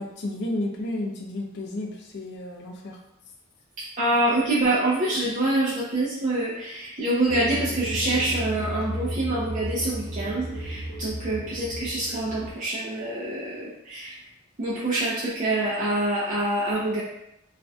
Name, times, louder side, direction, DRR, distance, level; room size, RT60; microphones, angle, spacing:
voice 1, 0.0-3.0, left 1 dB, 55° left, 1 dB, 0.4 m, -32 dB
voice 2, 3.8-14.2 14.6-17.0, right 2 dB, 40° right, -8 dB, 0.5 m, -26 dB
sound 1, 7.3-12.5, equal, 60° right, 1.0 m, -33 dB
2.4 x 2.1 x 2.6 m, 0.83 s
head